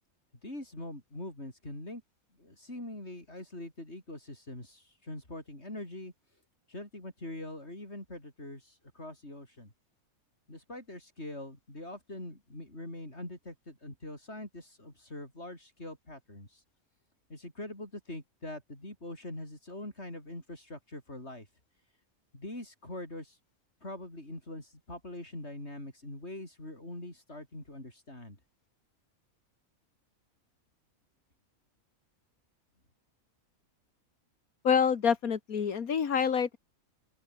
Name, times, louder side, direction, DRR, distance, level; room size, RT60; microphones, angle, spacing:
voice 1, 0.4-2.0 2.4-6.1 6.7-9.7 10.5-16.6 17.3-21.5 22.3-23.4 23.8-28.4, left 1 dB, 50° left, 8.4 m, -43 dB
voice 2, 34.6-36.6, left 7 dB, 80° left, 2.0 m, -27 dB
open air
omnidirectional pair, 1.5 m